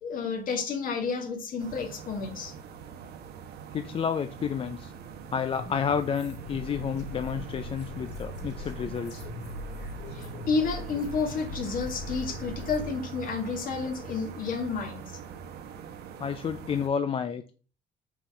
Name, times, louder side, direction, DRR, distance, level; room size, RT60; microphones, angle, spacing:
voice 1, 0.0-2.5 10.1-15.2, left 4 dB, 55° left, 3 dB, 2.0 m, -31 dB
sound 1, 1.6-16.9, right 6 dB, 70° right, 1.0 m, -43 dB
voice 2, 3.7-4.9 5.3-9.3 16.2-17.5, left 7 dB, 35° left, 9 dB, 0.5 m, -30 dB
sound 2, 5.5-12.9, left 2 dB, 80° left, 3.2 m, -41 dB
6.0 x 4.1 x 5.7 m, 0.38 s
cardioid pair, 110°, 17 cm